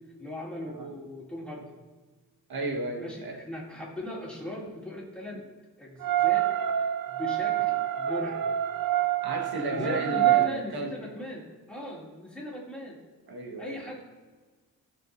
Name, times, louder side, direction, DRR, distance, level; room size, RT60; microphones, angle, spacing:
voice 1, 0.2-1.7 3.0-5.4 5.8-6.5 6.7-8.5 9.7-13.0 13.6-14.0, left 1 dB, 5° left, -5 dB, 2.7 m, -39 dB
voice 2, 2.5-3.4 9.2-10.9 13.3-13.8, right 2 dB, 85° right, 1 dB, 1.5 m, -33 dB
sound 1, 6.0-10.5, right 12 dB, 65° right, 0.6 m, -26 dB
18.0 x 6.2 x 2.6 m, 1.3 s
wide cardioid pair, 120°, 37 cm